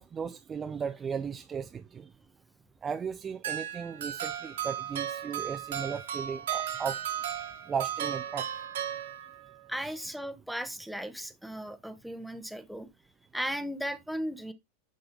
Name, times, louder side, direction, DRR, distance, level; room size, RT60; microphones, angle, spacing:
voice 1, 0.0-2.1 2.8-7.0 7.7-8.5 9.8-9.9, right 6 dB, 20° right, 0.4 m, -36 dB
sound 1, 3.4-9.6, right 9 dB, 60° right, 1.3 m, -35 dB
voice 2, 9.7-12.9 13.3-14.5, equal, ahead, 0.8 m, -36 dB
11.0 x 3.8 x 2.7 m
figure-of-eight pair, 90°, 0 cm